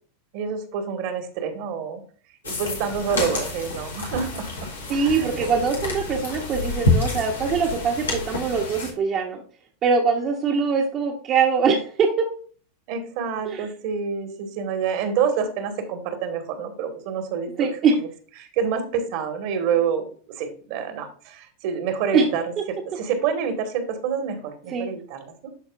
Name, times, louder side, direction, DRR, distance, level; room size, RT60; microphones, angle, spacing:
voice 1, 0.3-2.0 2.4-5.6 12.9-17.7 18.4-22.4 22.7-25.5, right 7 dB, 60° right, 6 dB, 1.7 m, -27 dB
sound 1, 2.4-8.9, left 2 dB, 85° left, 1.7 m, -28 dB
voice 2, 4.9-9.4 9.8-12.3 13.5-13.6 17.6-17.9 22.1-22.3 24.7-24.9, right 5 dB, 35° right, 0 dB, 1.2 m, -23 dB
12.5 x 4.2 x 2.5 m, 0.43 s
hypercardioid pair, 95°, 0 cm